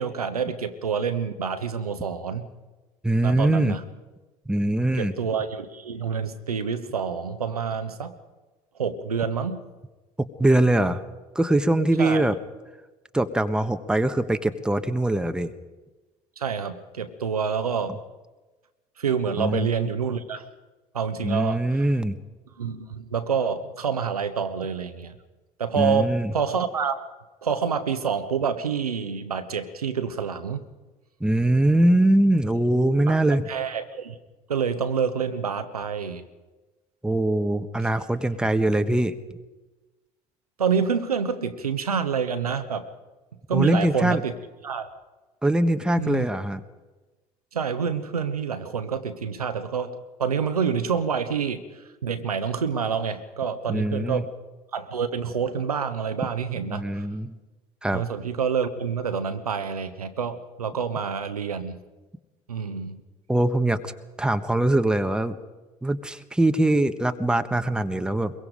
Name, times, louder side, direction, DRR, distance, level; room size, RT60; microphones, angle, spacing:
voice 1, 0.0-2.5 3.2-3.8 5.0-8.1 8.8-9.6 12.0-12.2 16.4-18.0 19.0-20.5 20.9-21.9 22.6-25.2 25.6-27.1 27.4-30.6 33.1-33.2 33.5-34.1 34.5-36.3 40.6-42.8 43.5-44.3 44.6-44.9 46.0-46.3 47.5-54.3 54.7-57.1 57.9-61.8 62.5-63.0, right 6 dB, 80° right, 10 dB, 1.1 m, -27 dB
voice 2, 3.0-3.8 4.5-5.1 10.2-11.0 11.3-12.4 13.1-15.5 19.4-19.9 21.2-22.2 25.8-26.3 31.2-33.5 37.0-39.1 43.5-44.2 45.4-46.6 53.7-54.2 56.7-57.4 57.8-58.0 63.3-63.9 64.2-65.4 65.8-68.3, right 1 dB, 5° right, 10 dB, 1.2 m, -22 dB
23.0 x 22.5 x 5.1 m, 1.2 s
figure-of-eight pair, 60°, 19 cm